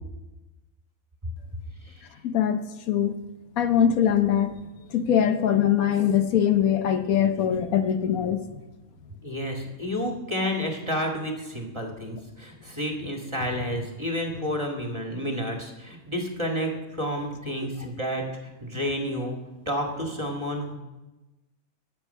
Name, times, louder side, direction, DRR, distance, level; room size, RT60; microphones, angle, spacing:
voice 1, 2.2-3.2 3.6-4.6 4.9-8.4, left 9 dB, 80° left, 8 dB, 1.3 m, -22 dB
voice 2, 9.2-19.4 19.6-20.7, equal, 20° right, 1 dB, 1.7 m, -30 dB
19.5 x 7.2 x 5.4 m, 1.1 s
omnidirectional pair, 1.5 m